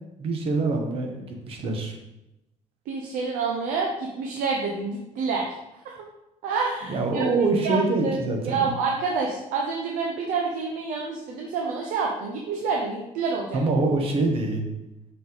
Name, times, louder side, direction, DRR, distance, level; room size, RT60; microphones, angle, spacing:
voice 1, 0.2-1.9 6.9-8.7 13.5-14.7, right 3 dB, 45° right, 3 dB, 1.1 m, -25 dB
voice 2, 2.9-5.5 6.4-7.2 7.6-8.2 8.4-13.6, right 4 dB, 85° right, 0 dB, 0.9 m, -28 dB
5.6 x 5.0 x 4.0 m, 0.94 s
cardioid pair, 150°, 13 cm